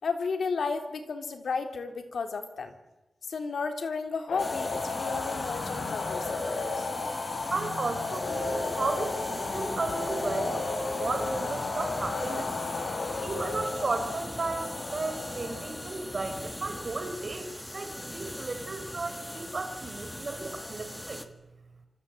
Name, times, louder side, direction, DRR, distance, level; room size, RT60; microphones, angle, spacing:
voice 1, 0.0-2.7 3.3-6.5 6.8-6.9, left 4 dB, 70° left, 7 dB, 3.5 m, -33 dB
sound 1, 4.3-16.7 20.5-20.7, left 3 dB, 85° left, 5.1 m, -34 dB
sound 2, 4.4-21.3, left 1 dB, 10° left, 1.9 m, -40 dB
voice 2, 7.5-12.5 13.2-21.2, right 3 dB, 35° right, 7 dB, 3.9 m, -34 dB
26.5 x 25.5 x 8.8 m, 1.0 s
wide cardioid pair, 175°, 0 cm